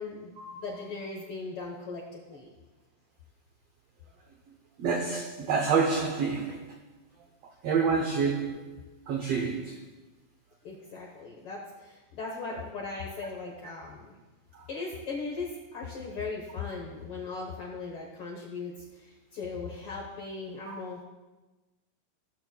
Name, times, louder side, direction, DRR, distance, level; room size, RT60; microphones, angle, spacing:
voice 1, 0.0-2.5 10.6-14.1 14.7-21.0, left 4 dB, 70° left, -1 dB, 1.3 m, -38 dB
voice 2, 4.8-6.7 7.6-8.7 9.1-9.8 14.5-14.6 20.7-20.8, right 5 dB, 90° right, 2 dB, 1.3 m, -28 dB
16.0 x 7.7 x 2.2 m, 1.2 s
omnidirectional pair, 3.8 m